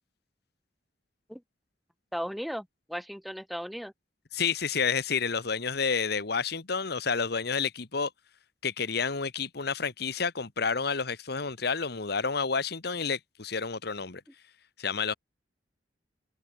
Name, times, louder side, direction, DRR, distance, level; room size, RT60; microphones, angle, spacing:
voice 1, 2.1-3.9, equal, ahead, 2.2 m, -36 dB
voice 2, 4.3-8.1 8.6-14.2 14.8-15.1, left 5 dB, 65° left, 1.5 m, -30 dB
head